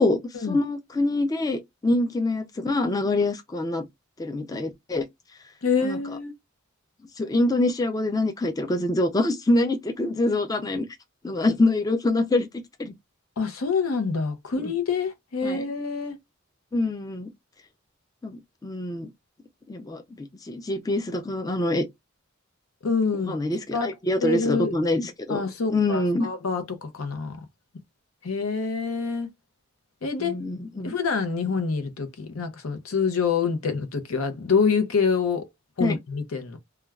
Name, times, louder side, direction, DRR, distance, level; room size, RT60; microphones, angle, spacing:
voice 1, 0.5-3.8 4.2-5.1 5.8-6.0 7.2-10.9 11.2-12.5 12.8-12.9 14.6-14.7 15.4-15.6 16.7-17.3 18.2-19.1 19.7-20.0 20.4-21.8 23.3-25.4 25.7-26.3 30.2-30.9 35.8-36.0, left 2 dB, 15° left, 0.4 m, -25 dB
voice 2, 5.6-6.3 13.4-16.2 22.8-23.3 23.7-23.9 24.2-24.7 25.3-27.4 28.2-29.3 30.0-30.3 30.8-35.4 35.8-36.6, left 5 dB, 85° left, 0.7 m, -26 dB
3.2 x 2.2 x 2.3 m
head